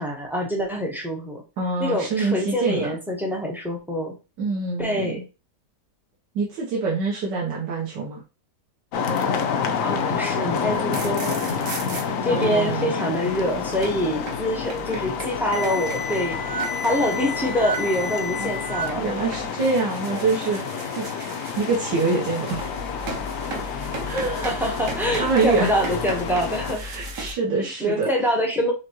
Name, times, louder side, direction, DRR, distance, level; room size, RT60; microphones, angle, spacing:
voice 1, 0.0-1.4 1.8-4.2 4.8-5.2 9.8-11.4 12.2-19.1 24.4-26.8 27.6-28.7, equal, ahead, 0 dB, 0.5 m, -25 dB
voice 2, 1.6-2.9 4.4-5.2 6.3-8.2 12.3-12.9 18.4-18.5 19.0-20.6 21.0-22.6 24.0-24.6 25.2-25.7 26.8-28.1, right 4 dB, 70° right, -4 dB, 1.7 m, -25 dB
sound 1, 8.9-26.7, left 6 dB, 65° left, 0.8 m, -29 dB
sound 2, 10.8-12.0 13.2-27.3, equal, 55° right, 1.1 m, -34 dB
5.1 x 3.1 x 2.9 m, 0.30 s
omnidirectional pair, 2.0 m